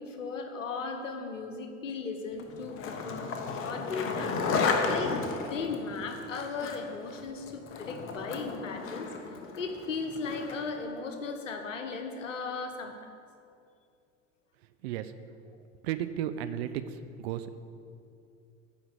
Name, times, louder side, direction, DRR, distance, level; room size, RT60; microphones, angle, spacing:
voice 1, 0.0-3.3 3.6-4.4 4.8-9.1 9.6-12.9, left 4 dB, 75° left, 5 dB, 1.2 m, -36 dB
Skateboard, 2.4-10.7, left 4 dB, 35° left, 1.1 m, -33 dB
voice 2, 15.8-17.6, right 10 dB, 55° right, 11 dB, 0.6 m, -34 dB
10.5 x 4.9 x 8.2 m, 2.5 s
figure-of-eight pair, 75°, 38 cm